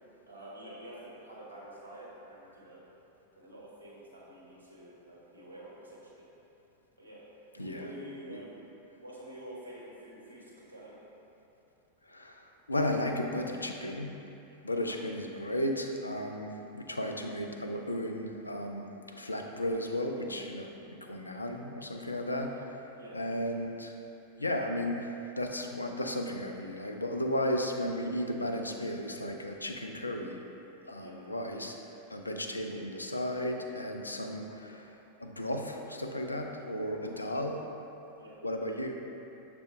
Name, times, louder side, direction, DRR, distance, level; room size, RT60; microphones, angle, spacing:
voice 1, 0.3-2.8 3.4-6.3 7.0-7.2 7.6-8.6 9.0-11.0 14.7-15.0 22.9-23.2 31.0-31.2 37.1-37.3 38.2-38.4, right 1 dB, 80° right, -6 dB, 1.1 m, -48 dB
voice 2, 7.6-7.9 8.3-8.4 12.1-14.2 14.6-18.9 19.2-22.8 23.1-23.9 24.4-30.4 30.9-31.8 32.1-37.6 38.4-38.9, left 1 dB, 80° left, 3 dB, 0.3 m, -34 dB
6.6 x 2.5 x 3.2 m, 2.9 s
figure-of-eight pair, 90°, 0 cm